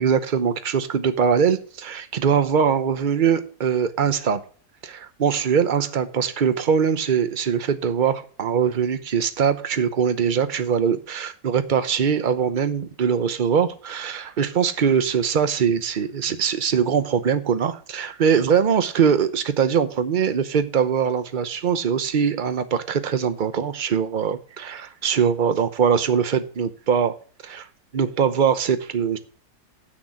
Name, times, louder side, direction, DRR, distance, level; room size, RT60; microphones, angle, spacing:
voice 1, 0.0-4.4 4.8-27.2 27.4-27.7 27.9-29.2, right 7 dB, 45° right, 0.7 m, -22 dB
8.1 x 6.2 x 7.2 m
omnidirectional pair, 1.7 m